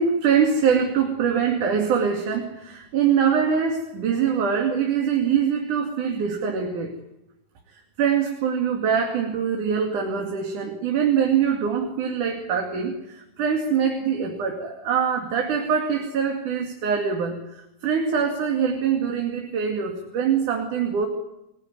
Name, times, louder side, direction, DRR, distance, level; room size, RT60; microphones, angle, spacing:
voice 1, 0.0-6.9 8.0-21.1, right 7 dB, 75° right, 2 dB, 3.9 m, -23 dB
28.5 x 18.5 x 9.5 m, 0.91 s
omnidirectional pair, 3.6 m